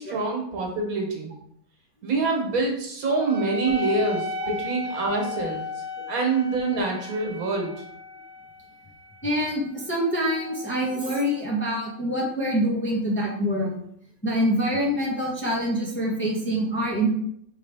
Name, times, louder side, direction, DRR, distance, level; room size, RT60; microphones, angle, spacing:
voice 1, 0.0-1.3 2.0-5.6 6.1-7.7, right 3 dB, 85° right, 0 dB, 1.5 m, -26 dB
Wind instrument woodwind instrument, 3.2-12.1, left 3 dB, 50° right, 1.2 m, -36 dB
voice 2, 9.2-13.8 14.2-17.1, equal, 10° left, -3 dB, 0.7 m, -25 dB
4.8 x 3.3 x 3.3 m, 0.70 s
omnidirectional pair, 1.5 m